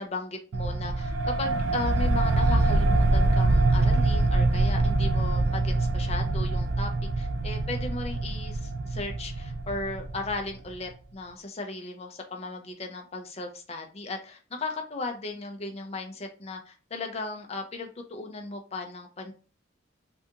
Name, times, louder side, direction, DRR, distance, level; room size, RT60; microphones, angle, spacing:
voice 1, 0.0-6.9 7.2-19.3, left 3 dB, 30° left, 4 dB, 0.5 m, -36 dB
sound 1, 0.5-10.7, right 2 dB, 85° right, 0.4 m, -25 dB
3.4 x 2.5 x 2.8 m, 0.38 s
head